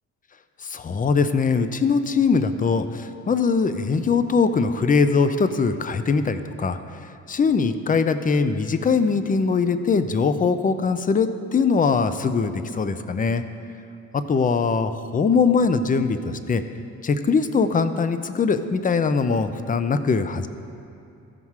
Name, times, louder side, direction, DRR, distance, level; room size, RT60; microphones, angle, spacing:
voice 1, 0.6-6.8 7.3-13.4 14.1-16.6 17.0-20.5, left 5 dB, 25° left, 11 dB, 0.5 m, -21 dB
14.5 x 5.7 x 4.7 m, 2.7 s
cardioid pair, 90°, 30 cm